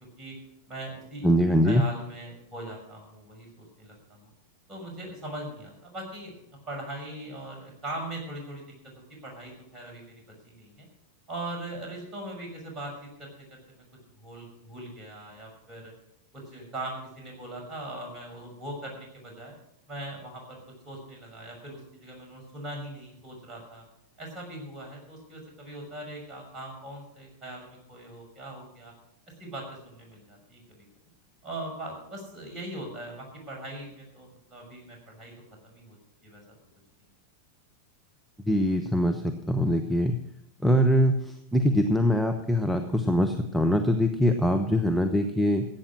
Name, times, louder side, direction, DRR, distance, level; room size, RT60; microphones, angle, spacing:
voice 1, 0.7-1.3 1.6-4.3 4.7-6.4 6.7-8.7 9.2-10.9 11.3-13.8 14.2-15.9 16.3-19.5 19.9-20.6 20.8-23.8 24.2-28.9 29.4-30.8 31.4-35.3 35.6-36.0 36.2-36.4, right 1 dB, 25° right, 1 dB, 6.2 m, -40 dB
voice 2, 1.2-1.8 38.5-40.2 40.6-45.7, equal, ahead, 7 dB, 1.0 m, -23 dB
16.0 x 8.9 x 6.2 m, 0.78 s
figure-of-eight pair, 90°, 0 cm